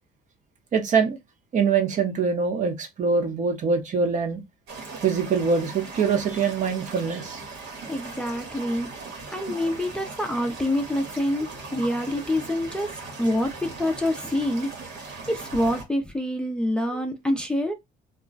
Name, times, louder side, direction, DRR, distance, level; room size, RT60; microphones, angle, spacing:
voice 1, 0.7-1.2 1.5-4.4 5.0-7.4 16.9-17.0, right 5 dB, 45° right, 0.8 m, -24 dB
sound 1, 4.7-15.8, right 3 dB, 90° right, 1.2 m, -39 dB
voice 2, 7.9-8.9 9.3-12.9 13.2-14.7 15.0-17.7, left 1 dB, 5° left, 0.4 m, -26 dB
2.3 x 2.1 x 3.7 m
cardioid pair, 110°, 17 cm